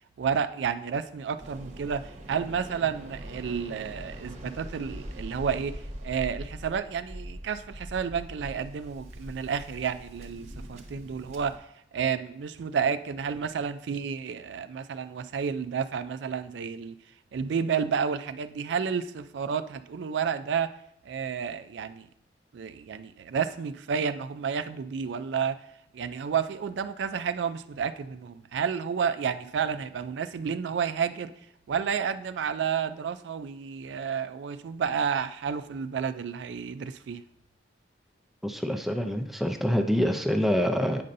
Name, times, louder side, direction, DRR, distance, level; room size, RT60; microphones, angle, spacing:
voice 1, 0.2-11.5 11.9-16.9 17.3-20.7 21.1-22.1 22.5-25.6 25.9-31.3 31.7-37.2, right 7 dB, 75° right, 11 dB, 0.3 m, -31 dB
Waves surf, 1.4-11.6, equal, 40° right, 0.9 m, -42 dB
voice 2, 38.4-41.0, equal, ahead, 6 dB, 0.4 m, -26 dB
8.5 x 5.4 x 2.6 m, 0.75 s
head